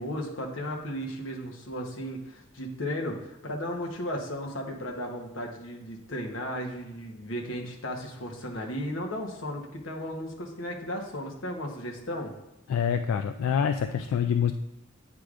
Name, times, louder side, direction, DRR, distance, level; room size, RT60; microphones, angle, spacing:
voice 1, 0.0-12.3, equal, 65° left, 1 dB, 1.0 m, -35 dB
voice 2, 12.7-14.5, left 7 dB, 85° left, 8 dB, 0.3 m, -26 dB
8.9 x 4.8 x 2.5 m, 0.91 s
head